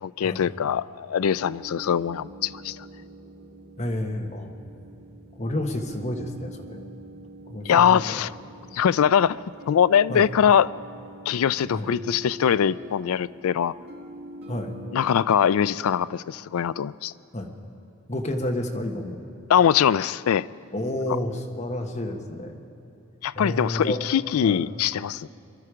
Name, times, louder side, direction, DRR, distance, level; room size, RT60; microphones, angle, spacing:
voice 1, 0.0-2.8 7.7-8.3 8.7-9.4 9.7-10.7 11.3-13.7 14.9-17.1 19.5-20.5 23.2-25.3, left 8 dB, 85° left, 18 dB, 0.4 m, -22 dB
sound 1, 1.3-15.2, right 1 dB, 50° right, 2.6 m, -44 dB
voice 2, 3.8-4.5 5.3-6.9 7.5-8.2 10.1-10.3 11.7-11.9 14.5-14.7 17.3-17.5 18.1-19.2 20.7-22.6 23.3-24.0 24.4-24.6, left 1 dB, 30° left, 3 dB, 1.3 m, -30 dB
22.5 x 12.5 x 5.0 m, 2.9 s
head